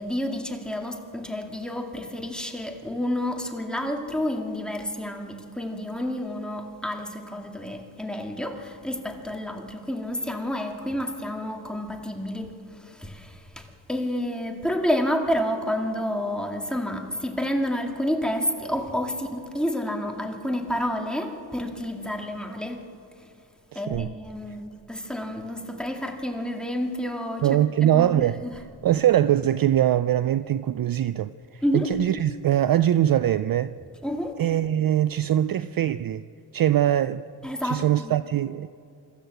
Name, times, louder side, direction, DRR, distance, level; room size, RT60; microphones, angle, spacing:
voice 1, 0.0-22.8 23.2-23.3 23.7-28.5 31.6-31.9 34.0-34.3 37.4-38.2, equal, ahead, 2.3 m, -29 dB
voice 2, 23.7-24.1 27.4-28.4 28.8-33.8 34.4-36.2 36.5-37.2 37.6-38.7, right 11 dB, 50° right, 0.5 m, -22 dB
25.5 x 13.5 x 7.9 m
cardioid pair, 85°, 46 cm